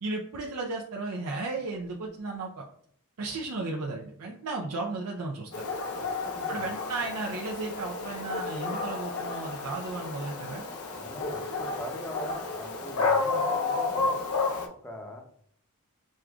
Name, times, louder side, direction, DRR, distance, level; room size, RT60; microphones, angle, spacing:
voice 1, 0.0-2.7 3.2-5.7 6.5-10.6, right 3 dB, 85° right, -1 dB, 0.5 m, -34 dB
Dog, 5.5-14.7, left 4 dB, 70° left, 0.6 m, -31 dB
voice 2, 6.0-6.7 11.0-14.2 14.7-15.2, left 1 dB, 10° left, 2 dB, 0.6 m, -42 dB
6.2 x 2.4 x 2.3 m, 0.63 s
head